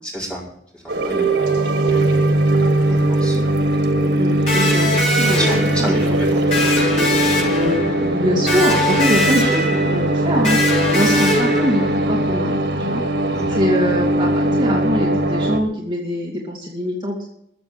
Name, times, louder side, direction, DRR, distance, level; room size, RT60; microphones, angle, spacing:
voice 1, 0.0-0.4 0.7-1.1 1.7-2.4 2.9-3.4 5.3-6.8 11.0-11.2 13.3-13.6, equal, 5° left, -5 dB, 5.0 m, -29 dB
sound 1, 0.9-15.6, right 1 dB, 85° right, 1.6 m, -19 dB
voice 2, 4.0-4.9 5.2-6.0 8.1-13.0 13.6-17.2, equal, 25° right, -3 dB, 2.5 m, -23 dB
Electric guitar, 4.5-12.2, left 2 dB, 40° left, 5.9 m, -22 dB
14.5 x 7.3 x 8.9 m, 0.74 s
head